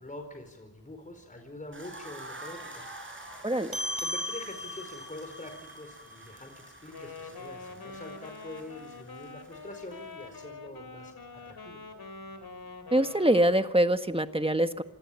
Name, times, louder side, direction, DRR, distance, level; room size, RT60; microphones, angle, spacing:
voice 1, 0.0-2.9 4.0-11.1 11.4-11.8, left 2 dB, 20° left, 5 dB, 4.7 m, -45 dB
sound 1, 1.7-10.5, right 2 dB, 30° right, 6.9 m, -48 dB
voice 2, 3.4-3.8 12.9-14.8, right 1 dB, 15° right, 8 dB, 1.5 m, -24 dB
sound 2, 3.7-8.5, left 1 dB, 70° right, 6.1 m, -39 dB
Wind instrument woodwind instrument, 6.9-14.0, left 3 dB, 70° left, 3.7 m, -45 dB
27.0 x 20.5 x 8.8 m, 0.96 s
wide cardioid pair, 70°, 38 cm